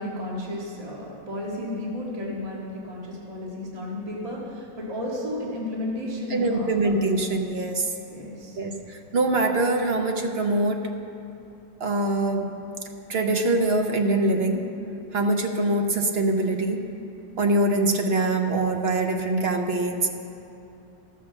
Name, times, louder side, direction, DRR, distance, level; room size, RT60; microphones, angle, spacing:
voice 1, 0.0-6.9 8.1-8.6, left 1 dB, 20° right, -4 dB, 1.8 m, -33 dB
voice 2, 6.3-7.9 8.6-10.8 11.8-12.5 13.1-14.6 15.1-16.8 17.4-20.1, right 2 dB, 45° right, 4 dB, 0.8 m, -23 dB
13.5 x 6.2 x 6.9 m, 2.7 s
omnidirectional pair, 1.9 m